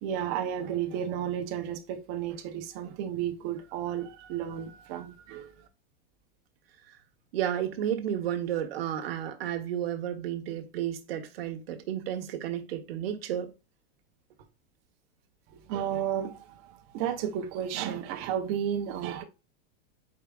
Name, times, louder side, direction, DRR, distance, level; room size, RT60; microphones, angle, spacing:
voice 1, 0.0-5.5 15.5-19.2, right 9 dB, 30° right, 0.6 m, -33 dB
voice 2, 7.3-13.5, right 10 dB, 80° right, 1.1 m, -32 dB
4.8 x 4.6 x 2.3 m
supercardioid pair, 180°, 30 cm